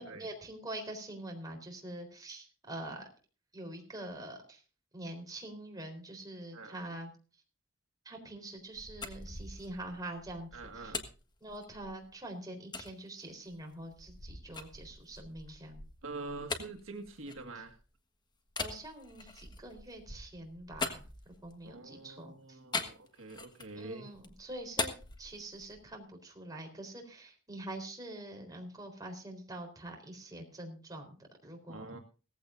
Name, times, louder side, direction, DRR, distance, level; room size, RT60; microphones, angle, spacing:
voice 1, 0.0-3.0 3.5-4.6 4.9-7.1 8.0-11.0 11.4-15.8 18.6-22.6 23.7-24.9 25.2-31.9, right 1 dB, 20° right, 3 dB, 3.9 m, -45 dB
sound 1, 8.6-12.1 12.7-12.9 13.5-17.9 18.5-21.7 22.7-23.8 24.1-25.9, left 3 dB, 20° left, 1.4 m, -42 dB
voice 2, 10.5-11.1 16.0-17.8 21.7-24.1 31.7-32.0, right 3 dB, 80° right, 4 dB, 1.8 m, -45 dB
18.0 x 15.0 x 2.6 m, 0.36 s
head